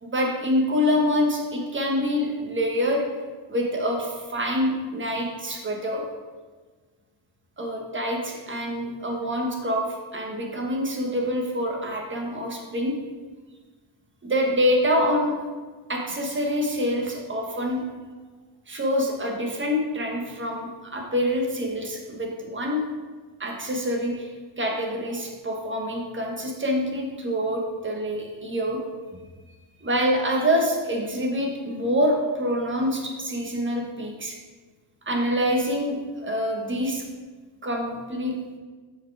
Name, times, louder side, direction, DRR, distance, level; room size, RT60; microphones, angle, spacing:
voice 1, 0.0-3.0 3.5-6.0 7.6-9.9 10.1-12.9 14.2-15.3 15.9-17.8 18.7-22.8 23.4-24.3 24.6-28.8 29.8-34.4 35.1-37.0 37.6-38.3, equal, 25° right, 0 dB, 1.3 m, -26 dB
8.0 x 4.9 x 4.8 m, 1.4 s
wide cardioid pair, 135°, 49 cm